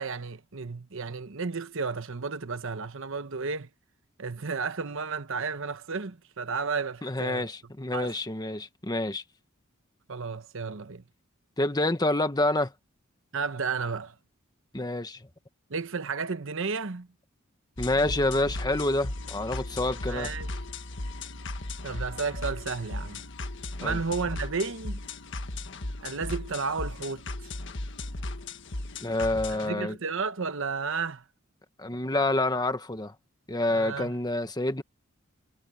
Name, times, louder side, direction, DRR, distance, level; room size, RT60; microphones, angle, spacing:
voice 1, 0.0-3.7 4.2-7.5 7.9-8.1 10.1-11.0 13.3-14.1 15.7-17.1 20.1-20.5 21.8-23.2 23.8-25.0 26.0-27.2 29.6-31.2 33.7-34.1, right 5 dB, 65° right, 1.0 m, -32 dB
voice 2, 7.0-9.2 11.6-12.7 14.7-15.3 17.8-20.3 23.8-24.0 29.0-30.0 31.8-33.1 33.5-34.8, left 2 dB, 20° left, 1.4 m, -28 dB
sound 1, 17.8-29.7, left 2 dB, 60° left, 1.6 m, -36 dB
head